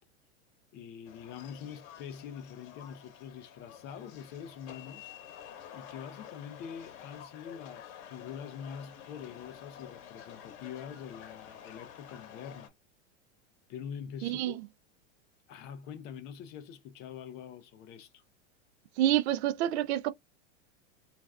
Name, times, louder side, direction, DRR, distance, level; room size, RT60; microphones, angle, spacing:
voice 1, 0.7-5.1 5.7-12.7 13.7-14.6 15.5-18.2, left 8 dB, 30° left, 0.4 m, -44 dB
sound 1, 1.1-12.7, left 9 dB, 50° left, 1.0 m, -50 dB
voice 2, 14.2-14.6 19.0-20.1, right 13 dB, 65° right, 0.5 m, -28 dB
2.4 x 2.2 x 3.3 m
supercardioid pair, 130°, 35 cm